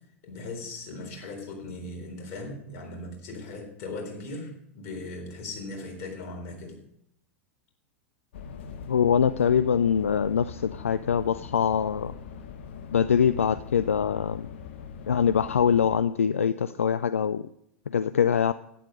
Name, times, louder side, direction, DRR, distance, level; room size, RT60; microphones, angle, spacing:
voice 1, 0.2-6.8, left 2 dB, 45° left, 2 dB, 3.9 m, -38 dB
sound 1, 8.3-16.0, left 6 dB, 60° left, 1.0 m, -42 dB
voice 2, 8.9-12.1 12.9-14.5 15.1-17.5 17.9-18.5, left 7 dB, 75° left, 15 dB, 0.3 m, -23 dB
11.5 x 10.0 x 5.3 m, 0.76 s
figure-of-eight pair, 85°, 7 cm